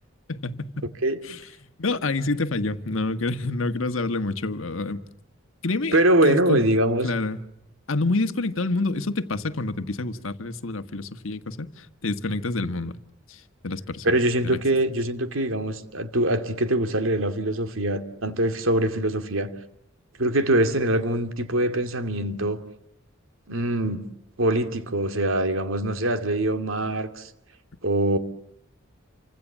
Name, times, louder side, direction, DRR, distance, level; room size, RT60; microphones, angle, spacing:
voice 1, 0.3-0.9 1.2-5.0 5.6-6.0 6.2-6.6 7.0-7.4 7.9-12.9 13.3-14.1 14.4-14.6, left 2 dB, 75° left, 1.5 m, -28 dB
voice 2, 5.9-7.1 14.0-19.5 20.2-22.6 23.5-24.1 24.4-27.3 27.8-28.2, right 1 dB, 75° right, 2.5 m, -23 dB
29.0 x 25.5 x 7.4 m
head